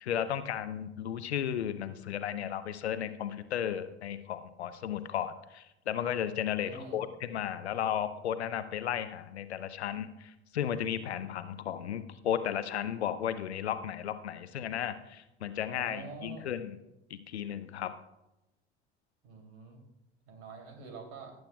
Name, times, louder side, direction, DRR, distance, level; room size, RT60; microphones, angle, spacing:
voice 1, 0.0-16.8 17.1-17.9, left 9 dB, 80° left, 12 dB, 0.8 m, -34 dB
voice 2, 6.6-7.0 15.6-16.5 19.2-19.8 20.3-21.3, right 4 dB, 60° right, 3 dB, 3.0 m, -46 dB
18.0 x 9.2 x 2.3 m, 0.92 s
figure-of-eight pair, 70°, 32 cm